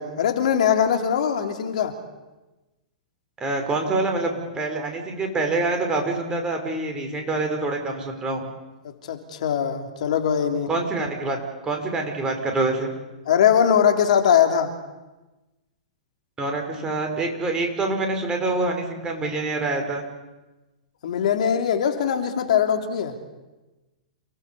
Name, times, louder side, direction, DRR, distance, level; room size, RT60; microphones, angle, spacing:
voice 1, 0.0-1.9 8.8-10.7 13.3-14.7 21.0-23.2, left 8 dB, 65° left, 5 dB, 3.2 m, -21 dB
voice 2, 3.4-8.4 10.7-11.4 11.6-12.9 16.4-20.0, right 3 dB, 20° right, 3 dB, 5.4 m, -26 dB
29.5 x 18.5 x 7.1 m, 1.1 s
hypercardioid pair, 110°, 4 cm